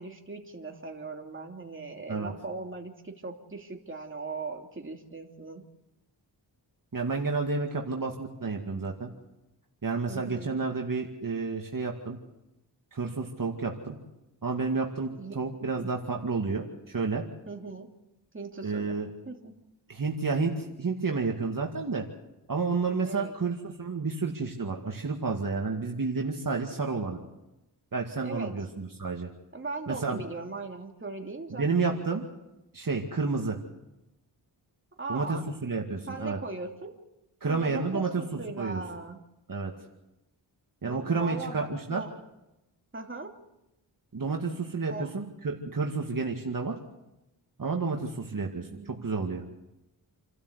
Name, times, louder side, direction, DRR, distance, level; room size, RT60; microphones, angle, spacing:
voice 1, 0.0-5.6 10.1-10.6 15.2-15.4 15.7-15.9 17.5-17.9 18.3-19.0 19.3-19.5 23.0-23.4 28.2-28.5 29.5-31.6 35.0-35.5 36.1-37.0 37.4-39.2 40.8-42.1 42.9-43.3 44.9-45.1 48.3-49.1, right 3 dB, 25° right, 2 dB, 2.9 m, -39 dB
voice 2, 6.9-9.1 9.8-12.2 12.9-14.0 14.4-17.2 18.6-19.1 19.9-22.0 22.5-27.2 27.9-29.3 29.9-30.2 31.5-32.2 32.7-33.6 35.1-36.4 37.4-38.8 39.5-39.7 40.8-42.0 44.1-46.8 47.6-49.4, right 4 dB, 45° right, 1 dB, 2.3 m, -30 dB
29.0 x 12.5 x 8.2 m, 0.94 s
cardioid pair, 65°, 45 cm